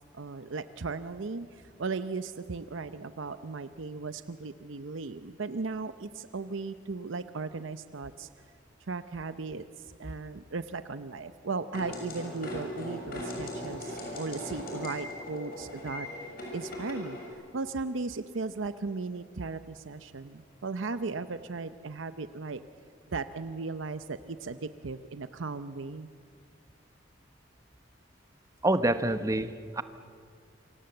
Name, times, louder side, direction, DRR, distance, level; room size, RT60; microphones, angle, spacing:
voice 1, 0.1-8.3 8.9-16.1 16.5-17.2 17.5-22.6 23.1-26.1, right 4 dB, 80° right, 11 dB, 0.7 m, -36 dB
sound 1, 11.7-17.3, left 1 dB, 50° left, 6.6 m, -39 dB
voice 2, 28.6-29.8, right 1 dB, 15° right, 11 dB, 0.9 m, -27 dB
27.5 x 24.5 x 7.8 m, 2.2 s
head